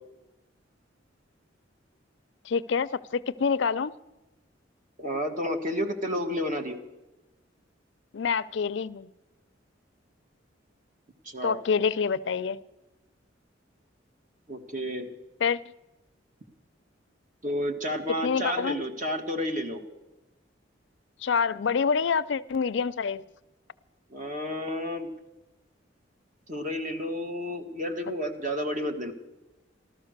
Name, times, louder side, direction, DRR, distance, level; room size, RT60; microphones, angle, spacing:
voice 1, 2.4-3.9 8.1-9.1 11.4-12.6 15.4-15.6 18.2-18.8 21.2-23.2, left 6 dB, 70° left, 16 dB, 0.5 m, -26 dB
voice 2, 5.0-6.8 11.2-11.6 14.5-15.1 17.4-19.8 24.1-25.1 26.5-29.1, equal, 45° right, 5 dB, 1.7 m, -31 dB
14.0 x 13.5 x 6.6 m, 1.0 s
head